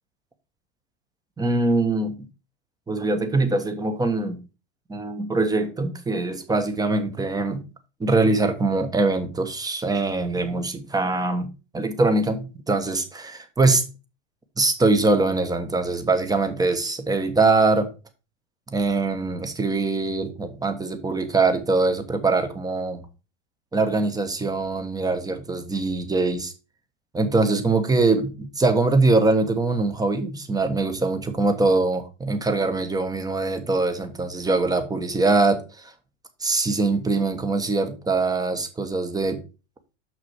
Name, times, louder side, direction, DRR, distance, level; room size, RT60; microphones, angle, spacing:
voice 1, 1.4-2.3 2.9-4.4 4.9-7.6 8.0-13.8 14.6-17.9 18.7-23.1 23.7-26.5 27.1-35.9 36.4-39.4, right 3 dB, 10° right, 1.2 m, -23 dB
6.1 x 6.1 x 4.5 m
hypercardioid pair, 100°, 35 cm